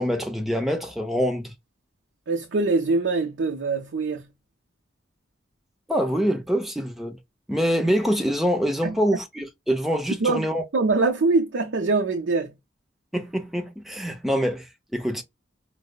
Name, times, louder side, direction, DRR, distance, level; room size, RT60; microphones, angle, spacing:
voice 1, 0.0-1.5 5.9-7.2 7.5-10.6 13.1-15.2, equal, ahead, 0.6 m, -25 dB
voice 2, 2.3-4.3 8.8-9.0 10.2-12.5, right 3 dB, 85° right, 0.6 m, -23 dB
4.7 x 2.0 x 2.2 m
head